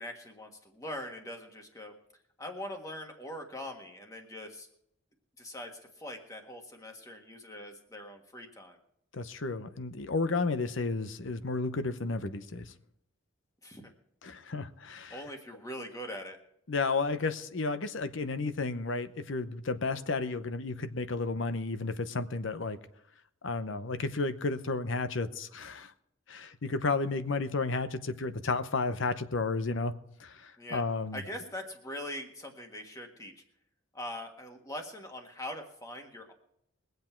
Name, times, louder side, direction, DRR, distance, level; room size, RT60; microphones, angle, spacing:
voice 1, 0.0-1.9 2.4-4.7 5.4-8.8 13.6-13.8 15.1-16.4 30.6-30.8 31.1-33.3 33.9-36.3, left 1 dB, 15° left, 1.5 m, -42 dB
voice 2, 9.1-12.7 14.2-15.2 16.7-22.8 23.4-25.9 26.3-29.9 30.2-31.2, left 3 dB, 65° left, 0.8 m, -32 dB
22.0 x 8.0 x 4.5 m
head